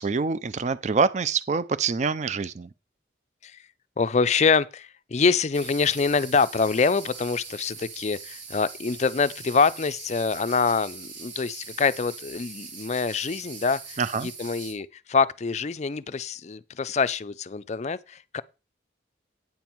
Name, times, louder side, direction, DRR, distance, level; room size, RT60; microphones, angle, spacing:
voice 1, 0.0-2.7 14.0-14.3, right 5 dB, 35° right, 0.4 m, -25 dB
voice 2, 4.0-18.4, left 5 dB, 35° left, 0.4 m, -25 dB
sound 1, 5.5-14.7, right 5 dB, 75° right, 2.8 m, -42 dB
9.3 x 7.1 x 4.5 m
head